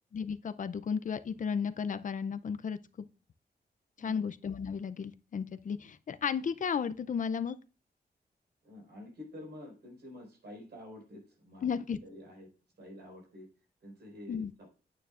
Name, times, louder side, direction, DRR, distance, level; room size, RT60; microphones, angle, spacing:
voice 1, 0.1-3.1 4.0-7.6 11.6-12.0 14.3-14.5, left 6 dB, 50° left, 0.5 m, -34 dB
voice 2, 8.6-11.7 12.0-12.5 12.8-13.5 13.8-14.7, left 1 dB, 80° right, 4.9 m, -48 dB
9.1 x 9.0 x 2.5 m
wide cardioid pair, 125°, 17 cm